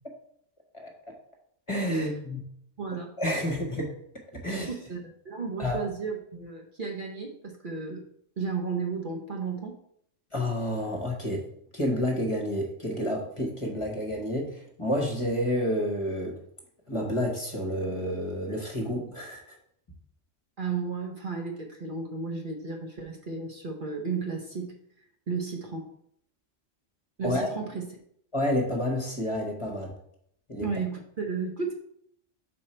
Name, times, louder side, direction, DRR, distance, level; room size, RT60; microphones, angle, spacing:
voice 1, 1.7-2.4 3.2-3.9 4.3-4.7 5.6-5.8 10.3-11.5 11.7-16.4 16.9-19.6 27.2-27.5 28.3-29.9 30.5-30.7, left 1 dB, 25° left, 0 dB, 1.1 m, -29 dB
voice 2, 2.8-3.1 4.5-5.0 5.2-8.0 8.4-9.8 20.6-24.7 25.3-25.9 27.2-27.9 30.6-31.7, right 5 dB, 45° right, 1 dB, 0.9 m, -33 dB
6.3 x 4.4 x 4.3 m, 0.70 s
omnidirectional pair, 1.3 m